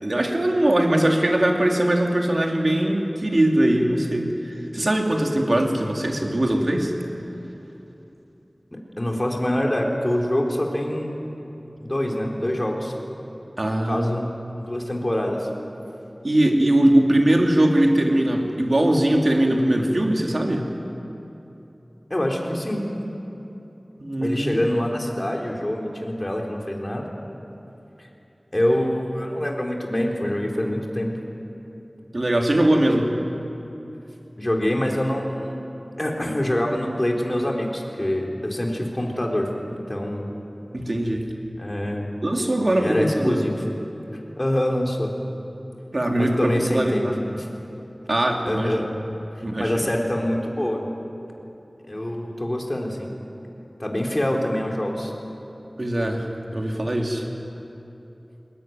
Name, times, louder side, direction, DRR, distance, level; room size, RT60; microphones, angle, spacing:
voice 1, 0.0-4.3 4.7-6.9 13.6-14.1 16.2-20.7 24.0-24.6 32.1-33.1 40.7-41.2 42.2-43.4 45.9-47.1 48.1-48.9 49.4-49.9 55.8-56.3 56.5-57.3, right 1 dB, 55° right, 1 dB, 3.0 m, -21 dB
voice 2, 8.7-11.2 11.8-12.9 13.7-14.3 14.7-15.5 22.1-22.8 24.2-27.0 28.0-28.1 28.5-31.1 34.4-35.6 36.0-40.3 41.6-42.1 42.8-43.5 44.4-45.1 46.2-47.1 47.3-47.5 48.4-48.9 49.6-50.8 51.9-53.1 53.8-55.1, left 1 dB, 30° left, 0 dB, 3.9 m, -25 dB
22.0 x 20.0 x 9.4 m, 3.0 s
wide cardioid pair, 50°, 0 cm